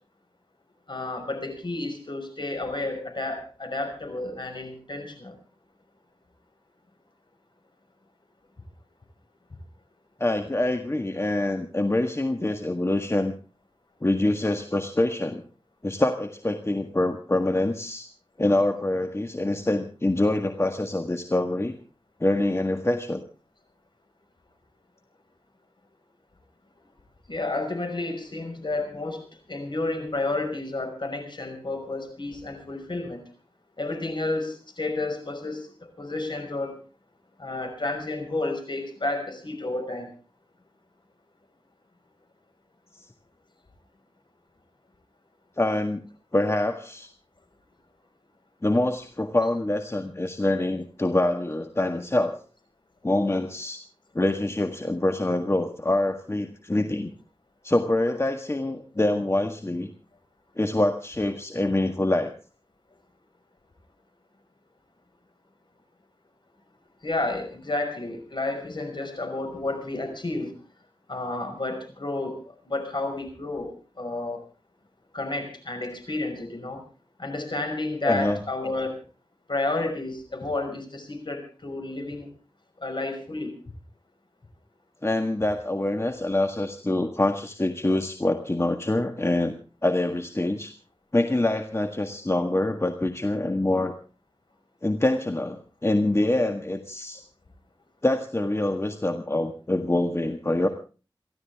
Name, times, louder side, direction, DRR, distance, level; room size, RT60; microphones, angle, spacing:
voice 1, 0.9-5.3 27.3-29.2 29.5-33.2 33.8-36.7 37.4-40.1 67.0-70.5 71.1-74.4 75.1-76.8 77.2-78.9 79.5-82.3 82.8-83.6, left 2 dB, 55° left, 6 dB, 5.7 m, -31 dB
voice 2, 10.2-13.3 14.0-15.4 15.8-18.1 18.4-21.7 22.2-23.2 45.6-46.0 46.3-47.1 48.6-52.4 53.0-53.8 54.1-57.1 57.6-59.9 60.6-62.3 78.0-78.4 85.0-89.5 89.8-90.7 91.1-93.9 94.8-97.2 98.0-100.7, left 1 dB, 30° left, 6 dB, 1.7 m, -25 dB
28.5 x 12.5 x 3.6 m, 0.36 s
wide cardioid pair, 55°, 9 cm